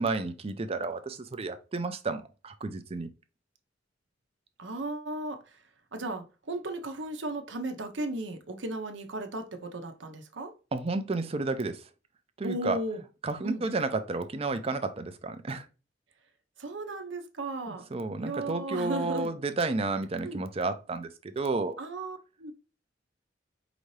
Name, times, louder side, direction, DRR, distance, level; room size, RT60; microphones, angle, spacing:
voice 1, 0.0-3.1 10.7-11.9 12.4-12.8 13.2-15.7 17.7-21.8, right 3 dB, 30° right, 0.5 m, -31 dB
voice 2, 4.6-5.6 5.9-10.5 12.4-13.0 13.4-13.6 16.6-19.3 20.2-20.4 21.8-22.5, right 2 dB, 80° right, 0.8 m, -36 dB
4.9 x 2.7 x 3.1 m
head